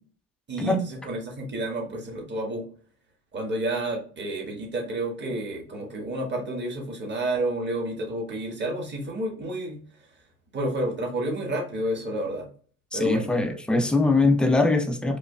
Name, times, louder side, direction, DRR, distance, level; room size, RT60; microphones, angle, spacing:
voice 1, 0.5-2.7 3.3-9.8 10.5-12.5 12.9-13.3, right 1 dB, 30° right, 1.5 m, -30 dB
voice 2, 12.9-15.2, left 2 dB, ahead, 0.6 m, -22 dB
4.9 x 2.3 x 2.2 m
hypercardioid pair, 75°, 38 cm